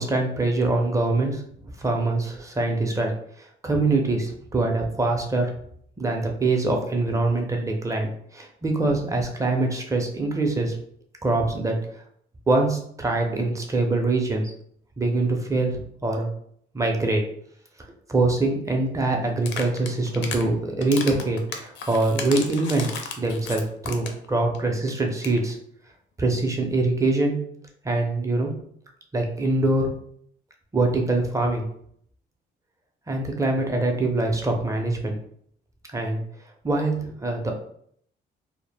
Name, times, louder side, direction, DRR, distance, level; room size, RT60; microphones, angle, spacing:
voice 1, 0.0-3.1 3.6-5.5 6.0-10.8 11.2-11.8 12.5-14.4 15.0-16.3 16.7-17.2 18.1-22.9 23.2-25.6 26.2-27.4 27.8-28.5 29.1-29.9 30.7-31.7 33.1-35.1 35.9-36.2 36.6-37.5, right 2 dB, 15° right, 2 dB, 0.5 m, -24 dB
sound 1, 19.4-20.4 20.8-24.3 24.5-24.6 24.9-25.0 25.2-25.4, left 5 dB, 65° left, 0.5 m, -34 dB
2.1 x 2.0 x 3.3 m, 0.66 s
cardioid pair, 90°, 20 cm